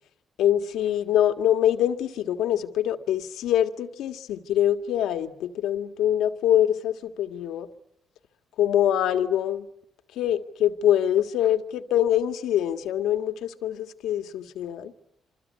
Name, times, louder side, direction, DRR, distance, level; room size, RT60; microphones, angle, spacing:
voice 1, 0.4-7.7 8.6-9.7 10.2-14.9, left 11 dB, 85° left, 1.7 m, -24 dB
27.0 x 26.0 x 8.5 m
cardioid pair, 90°, 0 cm